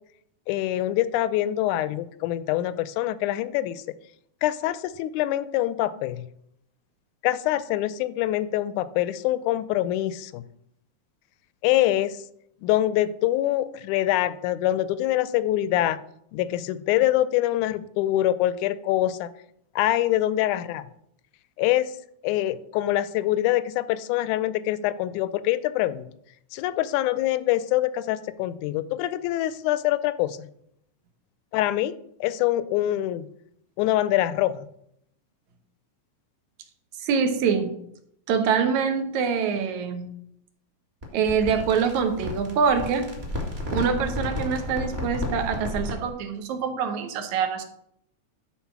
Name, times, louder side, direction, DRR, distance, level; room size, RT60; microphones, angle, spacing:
voice 1, 0.5-3.8 4.4-6.2 7.2-10.4 11.6-12.2 12.6-16.0 16.3-19.3 19.8-20.8 21.6-22.0 22.2-26.1 26.5-30.5 31.5-33.3 33.8-34.7, left 14 dB, 80° left, 16 dB, 1.9 m, -24 dB
voice 2, 37.0-37.8 38.3-40.1 41.1-43.2 43.7-47.6, right 6 dB, 70° right, 7 dB, 2.3 m, -25 dB
sound 1, 41.0-46.1, left 1 dB, 25° right, 1.6 m, -32 dB
11.5 x 4.4 x 5.9 m, 0.72 s
omnidirectional pair, 3.6 m